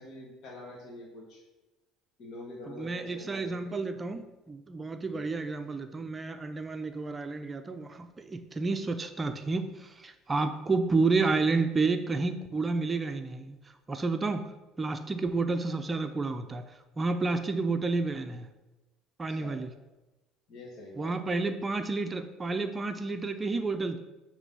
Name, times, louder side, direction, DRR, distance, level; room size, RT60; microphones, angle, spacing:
voice 1, 0.0-1.4 2.2-3.7 5.1-5.3 19.3-19.6 20.5-21.1, left 1 dB, 55° left, -5 dB, 1.7 m, -45 dB
voice 2, 2.7-13.6 13.9-14.5 14.8-18.5 19.2-19.7 21.0-24.0, right 3 dB, 20° right, 8 dB, 0.5 m, -30 dB
9.5 x 3.3 x 5.5 m, 1.1 s
cardioid pair, 110°, 0 cm